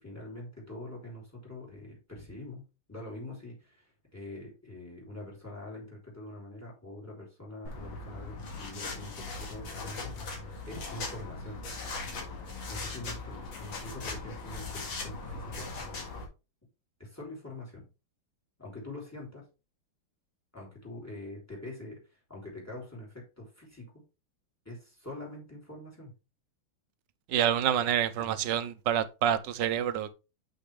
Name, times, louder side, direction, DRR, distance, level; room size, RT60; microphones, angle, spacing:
voice 1, 0.0-10.4 10.7-11.6 12.7-15.7 17.0-17.9 18.6-19.5 20.5-24.0 24.6-26.1 28.2-28.3, left 1 dB, 5° left, 3.1 m, -44 dB
sound 1, 7.6-16.2, left 3 dB, 70° left, 2.6 m, -39 dB
voice 2, 27.3-30.1, right 10 dB, 70° right, 1.3 m, -27 dB
7.0 x 5.8 x 3.3 m
omnidirectional pair, 2.2 m